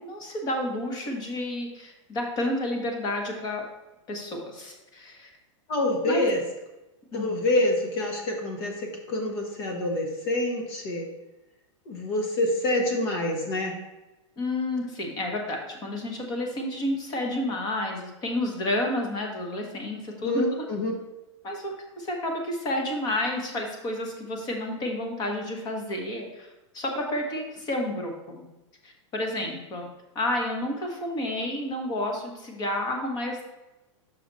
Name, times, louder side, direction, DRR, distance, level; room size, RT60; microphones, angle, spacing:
voice 1, 0.0-3.6 4.1-5.3 6.0-6.3 7.1-7.4 14.4-20.4 21.4-26.5 26.7-28.5 28.8-29.9 30.1-33.5, left 1 dB, 25° left, 2 dB, 1.1 m, -30 dB
voice 2, 5.7-6.4 7.1-11.1 11.9-13.7 20.2-20.9, left 1 dB, 50° left, 1 dB, 1.3 m, -26 dB
5.9 x 5.0 x 4.0 m, 1.0 s
supercardioid pair, 155°, 16 cm